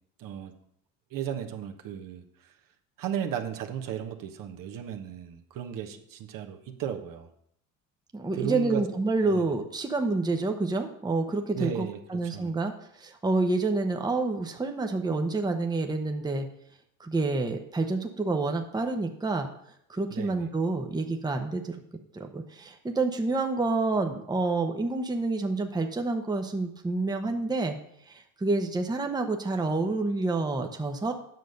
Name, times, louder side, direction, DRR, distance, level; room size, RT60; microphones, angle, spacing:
voice 1, 0.2-0.5 1.1-2.5 3.0-7.3 8.3-8.8 9.2-9.5 11.5-12.5 20.1-20.5, right 9 dB, 50° right, 4 dB, 1.3 m, -35 dB
voice 2, 8.1-12.7 13.0-16.5 17.0-19.5 19.9-21.8 22.1-27.8 28.1-31.1, right 3 dB, 10° right, 4 dB, 1.0 m, -28 dB
9.4 x 6.3 x 5.3 m, 0.74 s
hypercardioid pair, 80°, 41 cm